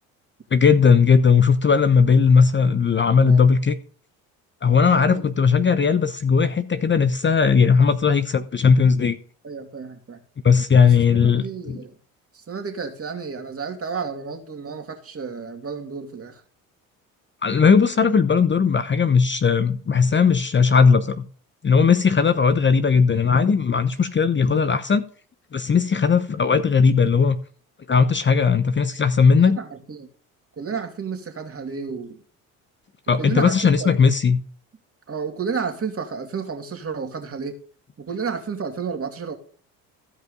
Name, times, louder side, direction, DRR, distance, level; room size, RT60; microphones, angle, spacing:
voice 1, 0.5-3.8 4.6-9.2 10.4-11.8 17.4-21.2 21.6-25.0 25.5-27.4 27.9-29.6 33.1-34.4, left 5 dB, 25° left, 0.9 m, -17 dB
voice 2, 4.9-5.3 9.4-10.2 11.1-11.9 12.3-16.4 29.6-30.1 30.6-32.2 33.2-33.9 35.1-37.6 38.0-39.3, right 5 dB, 35° right, 2.6 m, -31 dB
15.0 x 5.3 x 5.3 m
hypercardioid pair, 65°, 41 cm